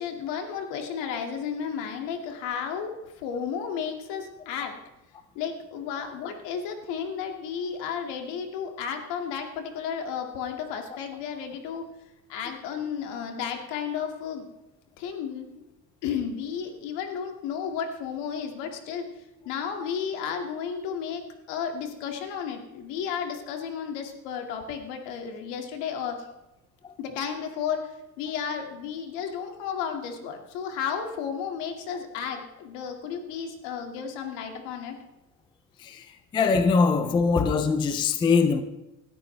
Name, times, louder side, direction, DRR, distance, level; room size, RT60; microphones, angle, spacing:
voice 1, 0.0-4.7 5.3-11.9 12.3-14.5 15.0-15.6 16.0-19.0 19.5-21.2 21.5-26.3 27.0-35.0, left 7 dB, 70° left, 2.3 m, -33 dB
voice 2, 35.8-38.6, left 4 dB, 10° left, 0.4 m, -23 dB
19.5 x 13.0 x 3.3 m
cardioid pair, 170°, 44 cm